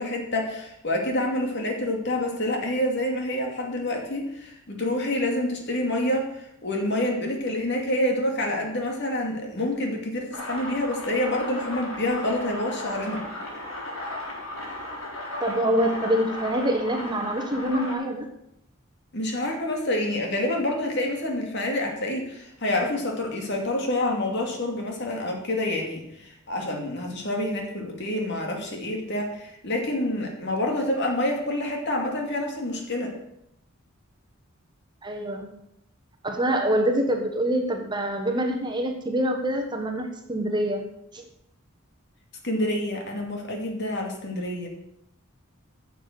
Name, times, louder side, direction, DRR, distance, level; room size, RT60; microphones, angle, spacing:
voice 1, 0.0-13.2 19.1-33.1 36.5-36.6 42.4-44.7, left 1 dB, 50° left, 1 dB, 2.6 m, -27 dB
sound 1, 10.3-17.9, left 1 dB, 70° left, 4.8 m, -35 dB
voice 2, 15.4-18.3 35.0-35.5 36.2-40.8 41.1-41.3, right 1 dB, 20° right, 3 dB, 1.3 m, -25 dB
11.0 x 7.0 x 8.0 m, 0.81 s
head